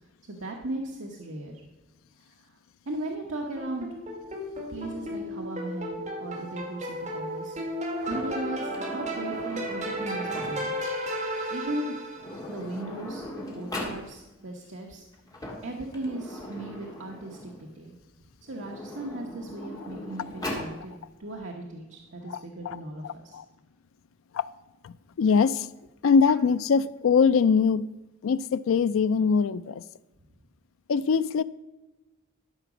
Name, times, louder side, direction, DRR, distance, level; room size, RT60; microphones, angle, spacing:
voice 1, 0.3-1.5 2.9-3.9 4.7-7.6 8.1-10.7 11.5-12.0 12.5-13.3 13.5-15.0 15.6-18.0 18.5-20.9 21.2-23.4, right 1 dB, 70° right, 1.0 m, -37 dB
sound 1, 3.6-12.4, right 1 dB, 35° right, 2.2 m, -34 dB
Sliding door, 8.0-10.8 11.8-11.9 12.1-14.0 15.1-17.7 18.4-20.7, left 1 dB, 20° left, 1.8 m, -39 dB
voice 2, 22.3-22.8 23.0-23.4 24.3-24.5 24.8-25.7 26.0-27.9 28.2-29.8 30.9-31.4, left 5 dB, 85° left, 0.4 m, -23 dB
12.5 x 5.0 x 6.0 m
head